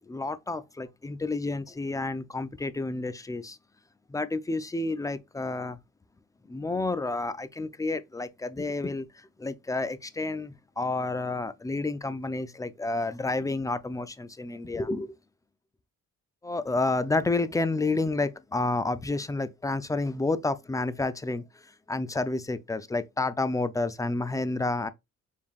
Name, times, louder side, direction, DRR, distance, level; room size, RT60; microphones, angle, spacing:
voice 1, 0.1-3.6 4.1-5.8 6.5-9.1 9.4-15.2 16.4-21.4 21.9-24.9, left 2 dB, 10° left, 0.4 m, -30 dB
4.7 x 3.5 x 2.4 m
cardioid pair, 90°, 30 cm